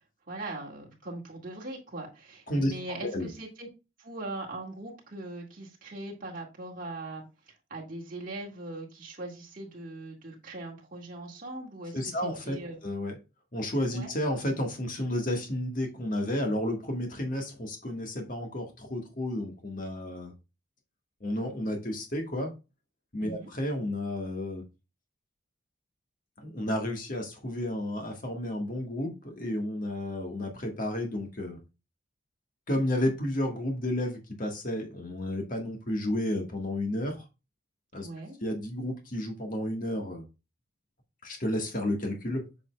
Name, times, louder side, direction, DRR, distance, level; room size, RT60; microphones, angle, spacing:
voice 1, 0.3-3.7 4.0-12.1 12.4-12.8 13.9-14.1 23.2-23.5 38.0-38.4, right 2 dB, 45° right, 2.0 m, -40 dB
voice 2, 11.9-12.6 12.8-13.2 13.5-20.3 21.2-22.5 23.1-24.6 26.4-31.6 32.7-37.2 37.9-38.1 38.4-40.2 41.2-42.5, left 1 dB, 45° left, 1.5 m, -31 dB
7.7 x 5.3 x 2.3 m
head